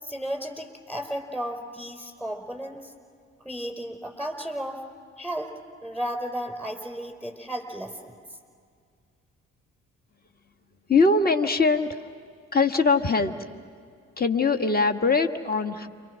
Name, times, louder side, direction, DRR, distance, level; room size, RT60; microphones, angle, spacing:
voice 1, 0.0-2.9 3.4-4.8 5.2-5.6 5.8-8.2, equal, 5° left, 4 dB, 5.3 m, -34 dB
voice 2, 10.9-12.0 12.5-13.3 14.2-15.9, left 4 dB, 25° left, 5 dB, 1.6 m, -22 dB
29.0 x 25.0 x 6.4 m, 2.2 s
hypercardioid pair, 45°, 37 cm